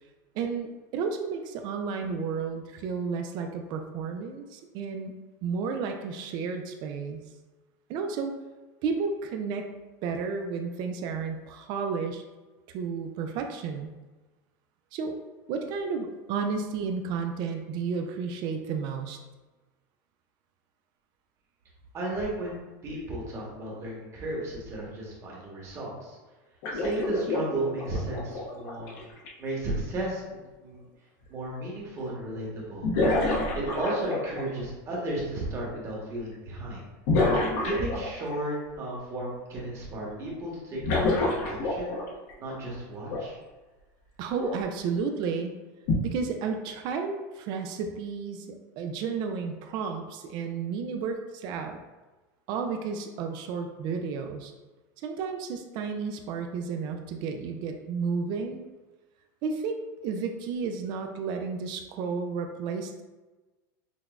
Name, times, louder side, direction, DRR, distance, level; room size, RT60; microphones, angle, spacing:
voice 1, 0.3-5.1 5.4-7.2 7.9-8.3 8.8-9.7 10.0-12.2 12.7-13.9 14.9-15.2 15.5-19.2 44.2-45.5 46.0-51.8 52.5-54.5 55.0-58.6 59.4-63.0, right 5 dB, 45° right, 5 dB, 0.4 m, -32 dB
voice 2, 21.9-26.2 26.7-28.9 29.4-30.8 31.3-32.9 33.5-36.8 37.6-41.9 42.4-43.4, right 1 dB, 25° right, -4 dB, 1.2 m, -34 dB
sound 1, 26.6-29.3 31.2-31.3 32.8-34.6 37.1-38.4 40.8-42.3 43.1-43.2 44.4-44.6 45.9-46.0, left 2 dB, 55° left, 0.8 m, -27 dB
5.9 x 2.1 x 2.4 m, 1.2 s
supercardioid pair, 145°, 10 cm